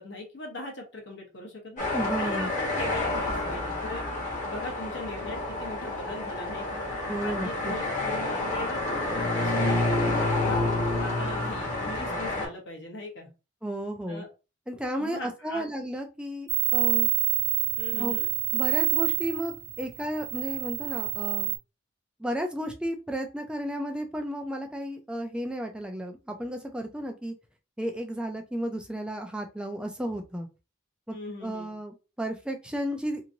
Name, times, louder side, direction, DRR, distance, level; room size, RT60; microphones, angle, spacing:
voice 1, 0.0-1.8 2.2-4.0 4.4-6.8 7.2-10.6 11.0-13.3 14.1-14.3 15.0-15.6 17.8-18.3 31.1-31.7, left 2 dB, 55° left, 0 dB, 1.0 m, -39 dB
sound 1, 1.8-12.5, left 2 dB, 40° left, 1.2 m, -29 dB
voice 2, 1.9-2.5 7.1-7.7 13.6-14.2 14.7-17.1 18.0-18.2 18.5-21.5 22.2-27.3 27.8-30.5 31.1-31.2 31.4-33.2, equal, 5° right, 3 dB, 0.4 m, -33 dB
sound 2, 16.5-21.6, right 20 dB, 45° right, 0.7 m, -27 dB
2.9 x 2.6 x 2.5 m, 0.30 s
head